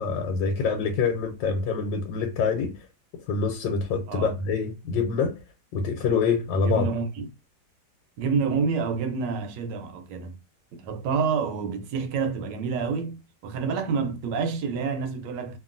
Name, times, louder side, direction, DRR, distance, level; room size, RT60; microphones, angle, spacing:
voice 1, 0.0-2.7 3.3-5.3 5.7-6.9, left 5 dB, 90° left, 1.3 m, -25 dB
voice 2, 6.6-7.3 8.2-10.4 10.7-15.6, right 5 dB, 80° right, 1.2 m, -28 dB
2.9 x 2.5 x 2.4 m
omnidirectional pair, 2.0 m